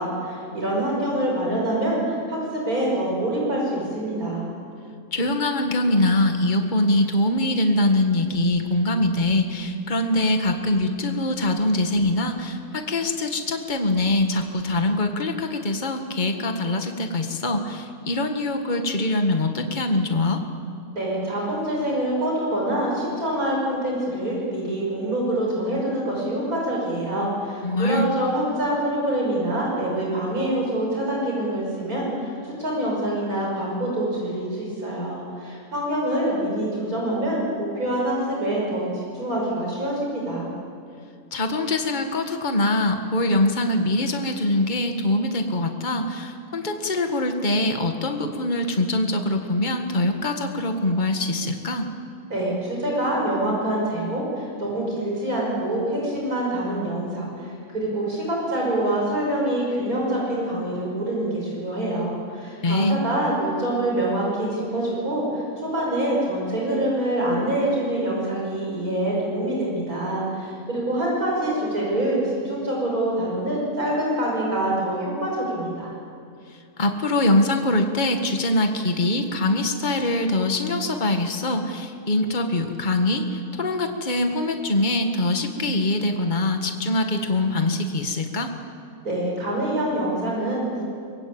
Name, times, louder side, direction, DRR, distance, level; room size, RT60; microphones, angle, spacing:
voice 1, 0.0-4.5 20.9-40.5 52.3-75.9 89.0-90.8, right 1 dB, 85° right, -3 dB, 6.5 m, -25 dB
voice 2, 5.1-20.4 27.6-28.1 41.3-51.9 62.3-63.0 76.8-88.5, left 1 dB, 35° left, 5 dB, 1.8 m, -23 dB
25.0 x 21.5 x 8.9 m, 2.3 s
omnidirectional pair, 1.5 m